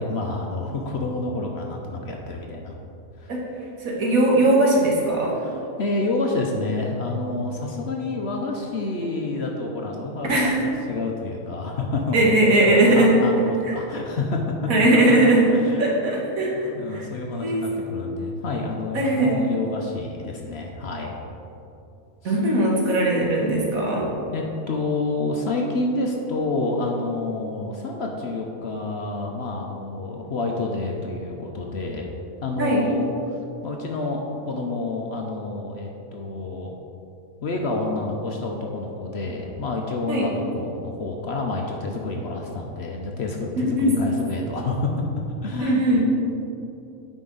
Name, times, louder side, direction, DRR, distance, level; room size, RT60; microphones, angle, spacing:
voice 1, 0.0-2.7 3.2-3.3 5.4-10.5 10.9-12.2 12.9-14.4 15.5-15.9 16.5-21.2 22.2-22.4 24.3-32.1 32.4-33.1 33.6-36.7 37.4-44.9 45.4-46.0, left 2 dB, 55° left, 0 dB, 0.8 m, -28 dB
voice 2, 3.8-5.3 10.3-10.6 12.1-13.1 13.7-13.8 14.7-15.5 15.8-17.1 17.4-17.8 18.9-19.3 22.2-24.1 32.6-32.8 40.1-40.2 43.6-44.0 45.6-46.0, right 1 dB, 70° right, -3 dB, 1.8 m, -19 dB
9.1 x 5.0 x 3.9 m, 2.7 s
omnidirectional pair, 1.5 m